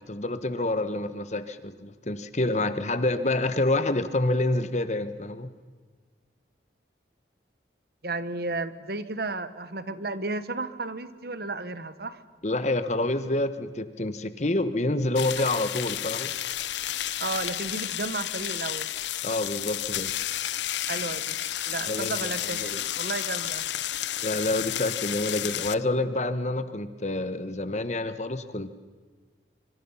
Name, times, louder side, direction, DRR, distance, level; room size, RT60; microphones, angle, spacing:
voice 1, 0.1-5.5 12.4-16.3 19.2-20.1 21.9-22.8 24.2-28.7, left 2 dB, 40° left, 12 dB, 1.2 m, -28 dB
voice 2, 8.0-12.2 15.4-15.5 17.2-18.9 20.9-21.4 21.7-23.6, right 3 dB, 60° right, 13 dB, 1.3 m, -33 dB
sound 1, 15.1-25.7, left 12 dB, 80° left, 0.7 m, -31 dB
25.5 x 25.0 x 5.7 m, 1.5 s
head